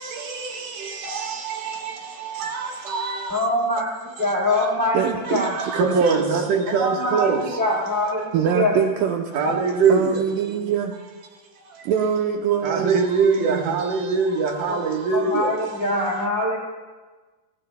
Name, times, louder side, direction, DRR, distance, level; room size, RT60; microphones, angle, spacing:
voice 1, 0.0-3.4 4.2-8.1 9.3-10.2 11.7-11.8 12.6-15.8, right 5 dB, 65° right, 1 dB, 2.7 m, -24 dB
voice 2, 3.3-3.8 4.2-5.0 5.3-5.5 6.7-8.7 14.7-14.8 15.1-16.6, left 1 dB, 15° left, -4 dB, 1.7 m, -23 dB
voice 3, 4.9-5.5 6.0-6.4 8.3-9.6 9.9-10.9 11.8-13.1 13.4-14.1 14.9-15.0, right 8 dB, 80° right, 2 dB, 2.0 m, -25 dB
27.0 x 15.5 x 2.2 m, 1.3 s
omnidirectional pair, 4.6 m